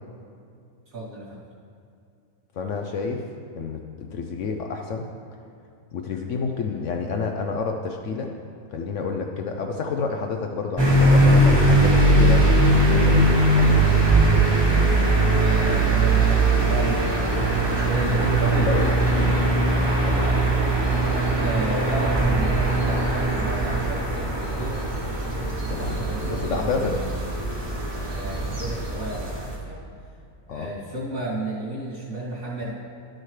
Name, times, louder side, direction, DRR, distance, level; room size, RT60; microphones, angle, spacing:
voice 1, 0.9-1.4 15.4-18.6 21.4-24.8 25.7-27.1 28.1-29.8 30.5-32.7, right 1 dB, 60° right, -8 dB, 3.0 m, -32 dB
voice 2, 2.6-3.2 3.5-5.0 5.9-8.3 8.7-12.5 12.9-14.1 18.5-19.5 20.1-20.6 25.7-27.0 30.5-30.7, left 5 dB, 65° left, 3 dB, 0.8 m, -29 dB
sound 1, 10.8-29.5, right 2 dB, 20° right, 1.0 m, -20 dB
12.0 x 6.4 x 3.2 m, 2.4 s
omnidirectional pair, 1.6 m